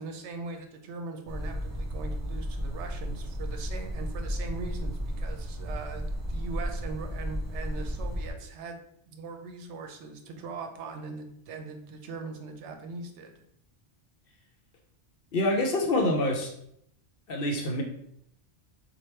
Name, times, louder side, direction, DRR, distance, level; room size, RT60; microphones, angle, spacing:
voice 1, 0.0-8.8 9.1-13.3, right 4 dB, 80° right, 5 dB, 0.9 m, -40 dB
sound 1, 1.3-8.3, equal, 30° right, 0.3 m, -33 dB
voice 2, 15.3-16.5 17.3-17.8, left 1 dB, 60° left, 2 dB, 0.7 m, -26 dB
3.2 x 2.3 x 4.3 m, 0.72 s
omnidirectional pair, 1.2 m